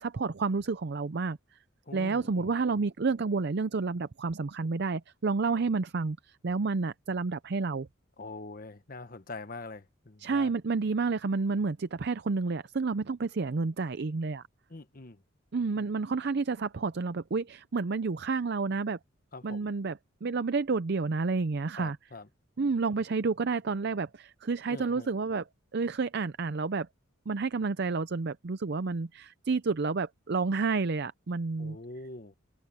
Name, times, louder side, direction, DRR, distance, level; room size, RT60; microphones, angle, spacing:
voice 1, 0.0-1.4 1.9-7.9 10.2-14.4 15.5-19.0 19.4-22.0 22.6-25.4 25.7-26.9 27.3-31.8, right 4 dB, 55° right, 0.5 m, -30 dB
voice 2, 1.8-2.5 8.2-10.5 14.7-15.2 19.3-19.7 21.8-22.3 24.7-25.1 31.6-32.3, left 3 dB, 45° left, 1.2 m, -44 dB
head